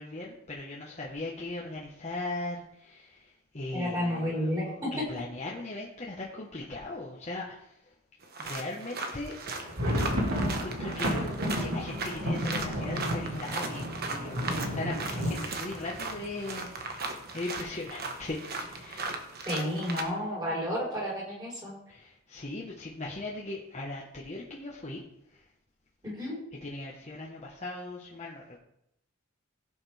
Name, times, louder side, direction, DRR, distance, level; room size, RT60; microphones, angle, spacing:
voice 1, 0.0-7.9 8.4-9.4 10.6-11.3 11.6-19.1 21.9-25.0 25.3-25.4 26.6-28.6, left 2 dB, 35° left, -4 dB, 1.3 m, -39 dB
voice 2, 3.7-4.9 19.5-21.7 26.0-26.4, equal, 20° right, -4 dB, 4.8 m, -31 dB
sound 1, 8.2-20.0, right 3 dB, 50° right, 1.3 m, -38 dB
sound 2, 9.4-17.1 17.5-17.6 17.8-18.1 18.6-19.1, equal, 85° right, 2.6 m, -32 dB
16.0 x 7.0 x 3.5 m, 0.77 s
head